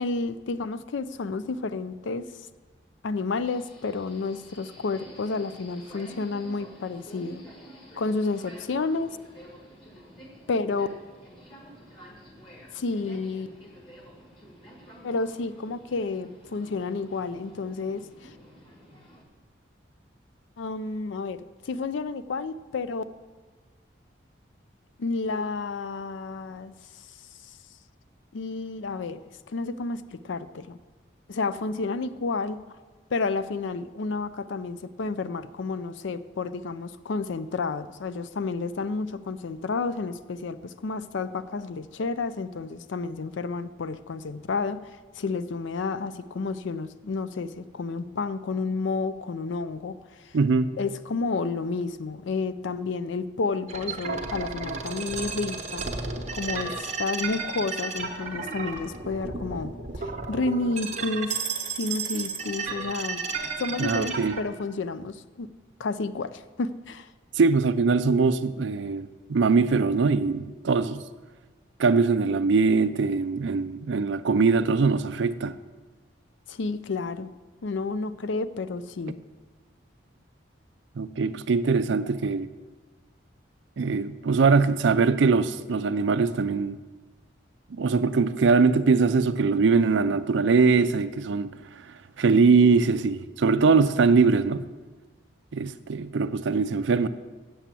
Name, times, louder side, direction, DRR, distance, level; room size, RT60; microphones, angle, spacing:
voice 1, 0.0-2.2 3.0-7.4 8.0-9.2 10.5-10.9 12.7-13.5 15.0-18.0 20.6-23.0 25.0-26.7 28.3-29.2 29.5-30.8 31.3-32.6 33.1-44.8 45.2-50.0 50.8-55.9 56.3-61.3 61.8-63.2 63.6-65.5 65.8-67.1 76.5-77.3 77.6-79.2, left 3 dB, 70° left, 0.4 m, -30 dB
Subway metro underground, 3.4-19.2, equal, 25° left, 1.5 m, -50 dB
voice 2, 50.3-50.7 63.8-64.4 67.4-71.0 71.8-75.6 81.0-82.5 83.8-86.8 87.7-91.5 92.2-94.7 95.5-97.1, right 4 dB, 70° right, 0.4 m, -22 dB
sound 1, 53.7-64.4, right 4 dB, 35° right, 0.9 m, -33 dB
8.2 x 7.0 x 7.5 m
head